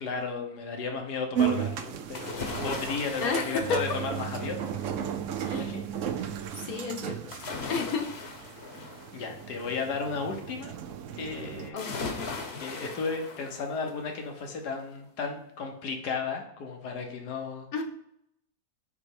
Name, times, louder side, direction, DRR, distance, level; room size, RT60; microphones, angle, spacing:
voice 1, 0.0-4.6 5.5-5.8 6.1-6.4 9.1-10.7 11.2-11.8 12.6-17.7, left 4 dB, 85° left, 3 dB, 1.7 m, -34 dB
sound 1, 1.3-11.7, right 9 dB, 65° right, 0.8 m, -35 dB
sound 2, 2.1-5.0 7.3-9.9 11.8-14.0 14.5-14.6, left 4 dB, 45° left, 1.2 m, -39 dB
voice 2, 3.2-3.8 5.4-5.7 6.1-6.2 6.6-7.4 7.7-8.1 11.7-12.1 17.7-17.8, left 4 dB, 65° left, 4 dB, 1.4 m, -31 dB
7.9 x 3.2 x 4.8 m, 0.75 s
omnidirectional pair, 1.7 m